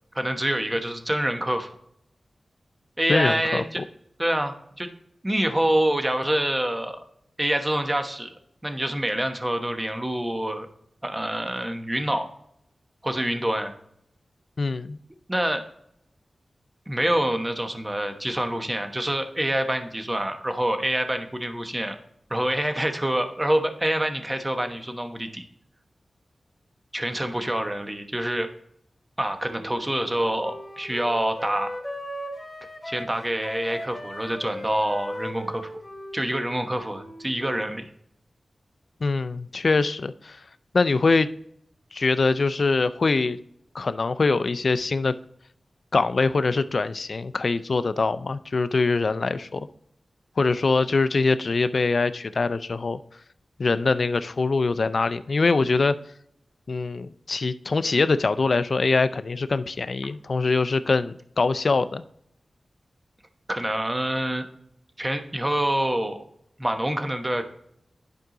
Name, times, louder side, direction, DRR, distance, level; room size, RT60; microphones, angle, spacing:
voice 1, 0.1-1.7 3.0-3.8 4.2-4.9 5.2-7.0 7.4-8.3 8.6-10.7 11.0-12.3 13.0-13.7 15.3-15.6 16.9-22.0 22.3-25.4 26.9-28.5 29.2-31.7 32.8-35.7 36.1-37.9 63.5-64.5 65.0-66.2 66.6-67.4, right 1 dB, 20° right, 7 dB, 1.1 m, -26 dB
voice 2, 3.1-3.8 14.6-15.0 39.0-40.4 40.7-41.3 41.9-43.4 43.7-45.1 45.9-49.7 50.4-53.0 53.6-55.9 56.7-62.0, left 3 dB, 60° left, 13 dB, 0.4 m, -23 dB
Wind instrument woodwind instrument, 29.4-37.4, equal, 15° left, 2.4 m, -38 dB
11.0 x 4.7 x 3.8 m, 0.72 s
wide cardioid pair, 70°, 0 cm